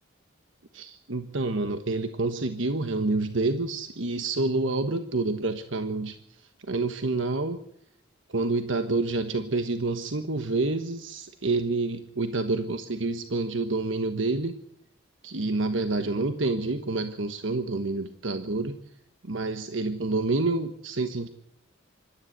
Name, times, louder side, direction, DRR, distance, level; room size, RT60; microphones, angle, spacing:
voice 1, 0.7-7.6 8.3-14.6 15.2-18.8 19.2-21.3, right 3 dB, 70° right, 8 dB, 1.3 m, -28 dB
26.0 x 13.0 x 8.1 m, 0.72 s
head